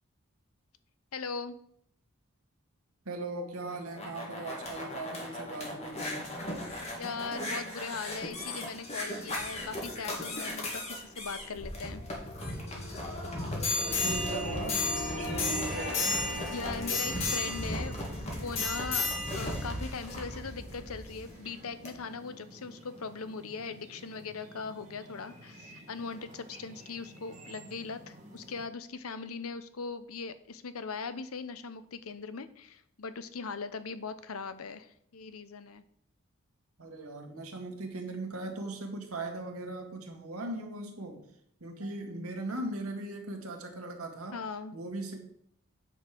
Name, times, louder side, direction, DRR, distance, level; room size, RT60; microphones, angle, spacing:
voice 1, 1.1-1.6 7.0-12.0 16.5-35.8 44.3-44.7, left 5 dB, 85° left, 12 dB, 0.8 m, -40 dB
voice 2, 3.1-6.4 13.8-16.2 36.8-41.3 41.6-44.4 44.7-45.3, right 2 dB, 85° right, 3 dB, 1.9 m, -39 dB
sound 1, 3.6-21.3 21.9-22.0, left 2 dB, 30° left, 2.1 m, -35 dB
sound 2, 10.4-22.2, left 1 dB, 70° left, 2.2 m, -43 dB
sound 3, 13.8-28.6, right 1 dB, 35° right, 1.9 m, -51 dB
8.7 x 5.0 x 6.1 m, 0.70 s
head